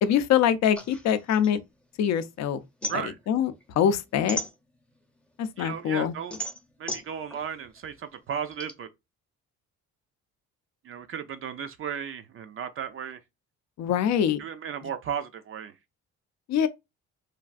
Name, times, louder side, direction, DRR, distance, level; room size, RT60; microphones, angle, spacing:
voice 1, 0.0-1.6 2.0-2.6 2.9-4.4 5.4-6.1 13.8-14.4 16.5-16.7, left 9 dB, 65° left, 0.5 m, -24 dB
sound 1, 0.8-2.3 2.6-5.1 5.6-8.7, equal, 5° left, 0.5 m, -37 dB
voice 2, 5.6-6.4 6.8-8.9 10.8-13.2 14.4-15.7, right 8 dB, 45° right, 0.4 m, -35 dB
3.2 x 2.4 x 2.4 m
cardioid pair, 90°, 30 cm